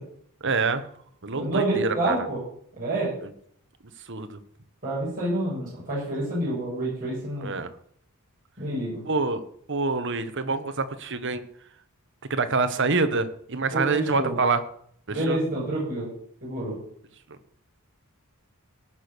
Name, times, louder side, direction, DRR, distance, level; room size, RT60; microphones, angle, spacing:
voice 1, 0.4-0.8 1.2-2.2 3.2-3.3 4.1-4.4 7.4-7.7 9.0-9.4 9.7-11.4 12.3-14.6 15.3-15.4, right 3 dB, 55° right, 10 dB, 1.2 m, -26 dB
voice 2, 1.3-2.4 2.8-3.1 4.8-7.5 8.6-9.0 13.7-14.4 15.1-16.1 16.4-16.7, right 1 dB, 40° right, -9 dB, 7.7 m, -28 dB
18.0 x 6.2 x 6.7 m, 0.64 s
head